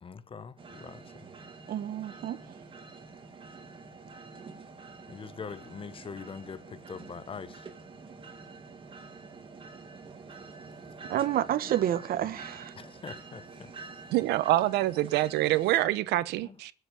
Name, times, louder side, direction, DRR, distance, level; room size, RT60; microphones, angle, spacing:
voice 1, 0.0-1.1 5.1-7.7 12.8-13.7 16.4-16.5, left 6 dB, 30° left, 1.2 m, -43 dB
sound 1, 0.6-15.8, right 4 dB, 30° right, 2.9 m, -47 dB
voice 2, 1.7-2.4 11.1-12.7, right 11 dB, 60° right, 1.3 m, -29 dB
voice 3, 14.1-16.7, right 15 dB, 85° right, 1.0 m, -26 dB
21.0 x 8.0 x 7.1 m
cardioid pair, 110°, 17 cm